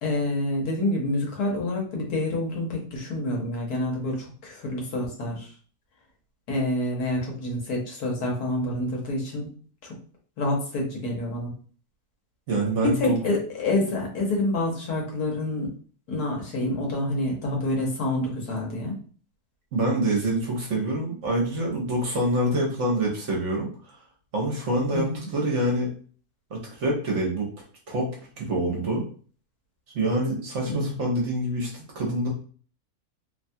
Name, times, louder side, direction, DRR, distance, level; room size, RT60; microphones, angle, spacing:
voice 1, 0.0-5.5 6.5-9.5 9.8-10.0 10.4-11.5 12.8-15.7 16.1-19.0 24.9-25.3 30.6-30.9, left 1 dB, 80° left, -1 dB, 1.4 m, -27 dB
voice 2, 12.5-13.1 19.7-23.7 24.3-25.9 26.5-27.5 27.9-28.1 28.4-29.0 29.9-32.3, right 1 dB, 60° right, -2 dB, 1.0 m, -26 dB
2.9 x 2.2 x 2.6 m, 0.43 s
omnidirectional pair, 1.6 m